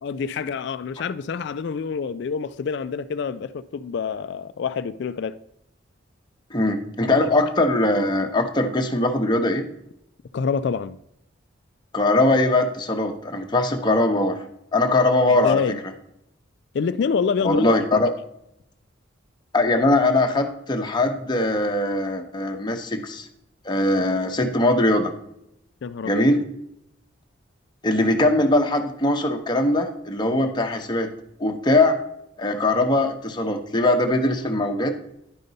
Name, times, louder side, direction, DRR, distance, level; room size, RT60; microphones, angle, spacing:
voice 1, 0.0-5.4 10.3-11.0 15.3-15.8 16.7-17.7 17.9-18.0 25.8-26.2, left 5 dB, 60° left, 0.3 m, -27 dB
voice 2, 6.5-9.6 11.9-14.4 14.7-15.6 17.4-18.1 19.5-23.3 23.6-25.1 26.0-26.4 27.8-31.1 31.4-32.0 32.4-34.9, left 2 dB, 20° left, 0.8 m, -21 dB
10.5 x 5.2 x 4.0 m
head